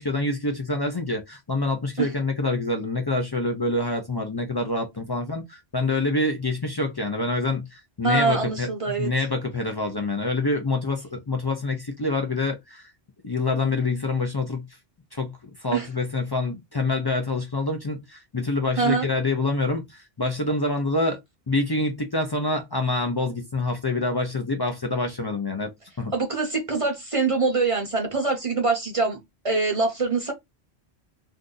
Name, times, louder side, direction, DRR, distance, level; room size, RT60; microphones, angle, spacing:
voice 1, 0.0-12.9 13.2-14.6 15.1-21.2 21.5-25.7 26.0-26.1, left 2 dB, 35° left, 0.4 m, -26 dB
voice 2, 8.0-9.1 15.7-15.9 18.8-19.1 26.1-29.2 29.4-30.3, right 3 dB, 35° right, 0.7 m, -24 dB
2.6 x 2.4 x 3.7 m
omnidirectional pair, 1.1 m